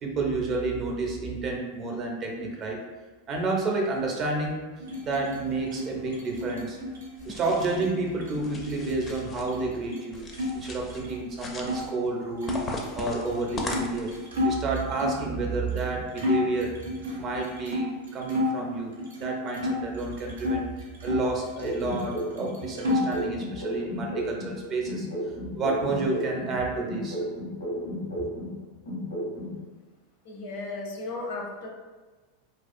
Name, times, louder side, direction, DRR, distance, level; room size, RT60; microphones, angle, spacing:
voice 1, 0.0-2.8 3.3-4.7 5.0-6.8 7.2-10.2 10.6-12.6 12.9-14.1 14.4-18.9 19.2-25.1 25.5-27.2 28.2-28.3, right 3 dB, 40° right, 1 dB, 0.5 m, -30 dB
sound 1, 4.8-10.5 10.8-11.8 12.4-15.3 15.8-15.9 16.2-18.6 19.0-20.6 21.0-22.1 22.4-23.3, left 2 dB, 90° right, 0.5 m, -32 dB
sound 2, 7.2-7.8 8.3-9.5 10.1-11.0 11.3-11.9 12.5-14.3, left 2 dB, 25° left, 0.4 m, -37 dB
sound 3, 21.6-24.5 24.9-28.5 28.9-29.5, equal, 90° left, 0.9 m, -33 dB
voice 2, 30.3-31.7, left 3 dB, 70° left, -1 dB, 0.6 m, -35 dB
2.3 x 2.3 x 2.5 m, 1.3 s
hypercardioid pair, 100°, 0 cm